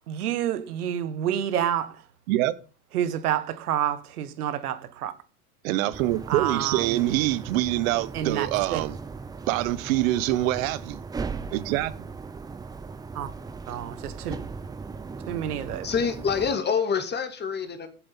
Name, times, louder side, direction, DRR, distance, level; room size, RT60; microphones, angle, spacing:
voice 1, 0.1-2.0 2.9-5.1 6.3-7.2 8.1-8.8 13.1-13.3 13.7-14.3 15.3-15.9, right 10 dB, 80° right, 1.6 m, -29 dB
voice 2, 5.6-9.0 9.5-11.0 11.5-11.9, right 16 dB, 60° right, 1.1 m, -25 dB
sound 1, 5.9-16.6, right 4 dB, 10° right, 0.5 m, -38 dB
voice 3, 15.8-17.9, left 6 dB, 20° left, 2.1 m, -26 dB
7.9 x 7.8 x 5.6 m
hypercardioid pair, 115°, 45 cm